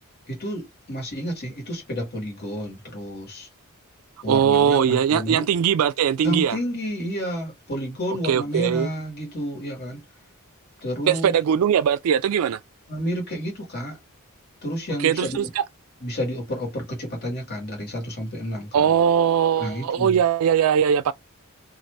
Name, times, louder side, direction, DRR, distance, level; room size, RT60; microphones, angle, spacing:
voice 1, 0.3-3.5 4.2-5.4 6.2-10.0 10.8-11.3 12.9-14.0 14.6-15.5 16.0-18.8 19.6-20.2, equal, 45° left, 1.5 m, -30 dB
voice 2, 4.3-6.6 8.2-8.9 11.1-12.6 15.0-15.6 18.7-21.1, right 8 dB, 70° right, 0.3 m, -20 dB
2.6 x 2.4 x 3.2 m
head